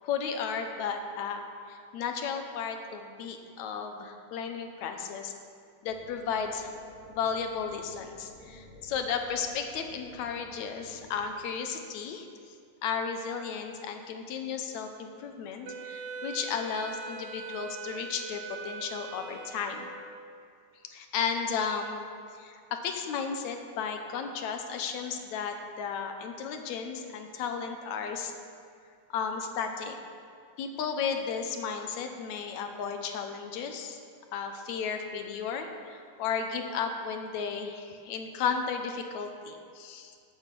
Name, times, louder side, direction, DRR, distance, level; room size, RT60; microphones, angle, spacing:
voice 1, 0.0-5.3 5.8-6.7 7.1-12.3 12.8-19.9 20.9-22.0 22.4-28.3 29.1-30.0 30.6-34.0 34.3-40.1, left 6 dB, 75° left, 5 dB, 2.2 m, -34 dB
sound 1, 5.8-11.3, left 1 dB, 60° left, 2.4 m, -52 dB
Wind instrument woodwind instrument, 15.6-20.2, right 3 dB, 70° right, 1.6 m, -42 dB
14.0 x 8.8 x 6.1 m, 2.3 s
omnidirectional pair, 3.5 m